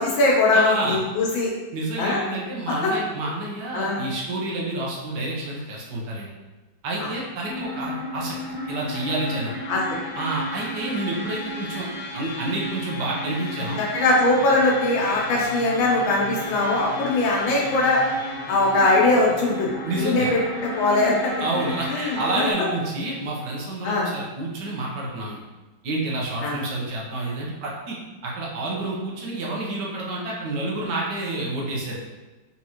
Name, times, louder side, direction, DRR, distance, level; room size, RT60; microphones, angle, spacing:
voice 1, 0.0-1.5 2.0-2.2 2.7-2.9 3.7-4.0 7.0-7.1 9.7-9.8 13.8-18.0 18.5-21.3 21.9-22.5 23.8-24.1 26.4-26.6, left 2 dB, 80° left, -3 dB, 1.7 m, -21 dB
voice 2, 0.5-1.0 1.7-6.3 6.8-8.4 8.7-9.5 10.1-11.9 12.1-13.8 19.8-20.3 21.4-25.4 25.8-31.9, right 2 dB, 65° right, -3 dB, 1.4 m, -29 dB
sound 1, 7.5-22.5, left 1 dB, 45° left, 1.0 m, -33 dB
4.1 x 3.5 x 2.9 m, 1.2 s
omnidirectional pair, 2.2 m